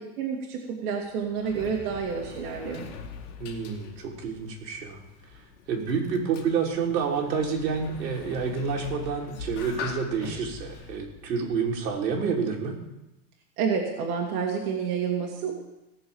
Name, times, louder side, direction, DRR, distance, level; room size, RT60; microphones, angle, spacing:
voice 1, 0.2-2.9 13.6-15.5, right 6 dB, 65° right, -1 dB, 2.6 m, -29 dB
Sliding door, 1.0-12.3, left 4 dB, 45° left, 2.1 m, -42 dB
voice 2, 3.4-5.0 5.3-5.4 5.7-12.8, right 5 dB, 85° right, 0 dB, 3.6 m, -29 dB
17.5 x 7.0 x 7.2 m, 0.95 s
supercardioid pair, 170°, 49 cm